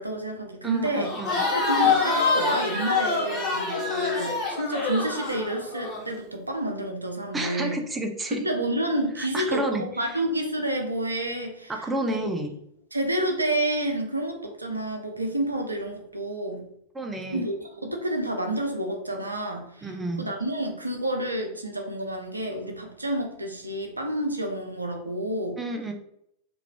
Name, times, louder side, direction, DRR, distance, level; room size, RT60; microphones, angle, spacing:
voice 1, 0.0-1.1 1.5-7.8 8.3-12.3 12.9-16.6 17.3-19.9 20.2-25.6, right 1 dB, 80° right, 4 dB, 0.5 m, -29 dB
voice 2, 0.6-1.4 7.3-8.4 9.2-9.8 11.7-12.5 16.9-17.5 19.8-20.3 25.6-25.9, right 1 dB, 15° right, 4 dB, 0.4 m, -30 dB
Crowd, 1.0-6.0, left 4 dB, 30° left, 1.1 m, -25 dB
3.1 x 2.4 x 2.2 m, 0.75 s
figure-of-eight pair, 90°, 0 cm